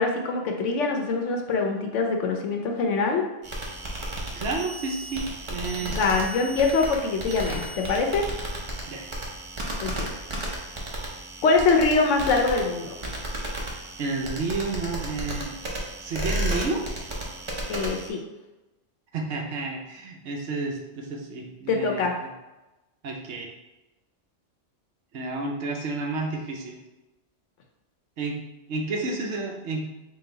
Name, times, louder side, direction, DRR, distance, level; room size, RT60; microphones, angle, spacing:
voice 1, 0.0-3.2 5.8-8.3 9.8-10.1 11.4-12.9 17.7-18.2 21.7-22.1, left 4 dB, 75° left, 2 dB, 1.0 m, -24 dB
sound 1, 3.4-18.1, right 1 dB, 30° right, 0.6 m, -33 dB
voice 2, 4.4-5.2 5.5-6.0 8.9-9.1 14.0-15.6 16.0-16.8 19.1-22.0 23.0-23.5 25.1-26.8 28.2-28.4 28.7-29.9, right 3 dB, 65° right, 1 dB, 0.9 m, -30 dB
3.9 x 2.3 x 3.8 m, 1.0 s
omnidirectional pair, 1.3 m